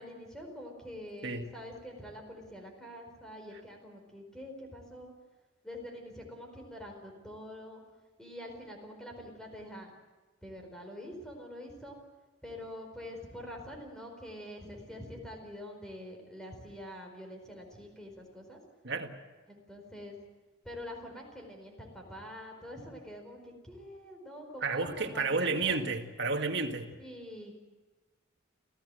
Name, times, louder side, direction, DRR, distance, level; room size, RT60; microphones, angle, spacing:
voice 1, 0.0-5.1 5.6-7.8 8.2-9.9 10.4-12.0 12.4-18.6 19.5-20.2 20.6-25.8 26.9-27.6, left 1 dB, 5° left, 2 dB, 4.6 m, -45 dB
voice 2, 24.6-26.9, right 3 dB, 60° right, 5 dB, 2.0 m, -31 dB
27.5 x 16.5 x 7.8 m, 1.2 s
head